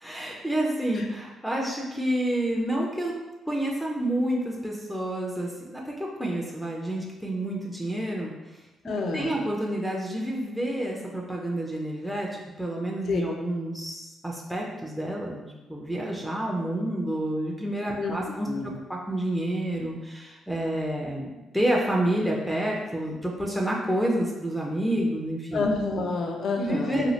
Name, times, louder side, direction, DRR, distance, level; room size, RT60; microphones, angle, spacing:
voice 1, 0.0-3.1 3.5-8.3 9.1-12.3 12.6-18.5 18.9-25.7 26.6-27.1, right 1 dB, ahead, -2 dB, 0.4 m, -29 dB
voice 2, 8.8-9.4 13.1-13.2 18.0-18.1 18.4-18.8 25.5-27.1, left 3 dB, 60° left, 2 dB, 0.4 m, -28 dB
2.7 x 2.3 x 3.0 m, 1.1 s
cardioid pair, 90°, 0 cm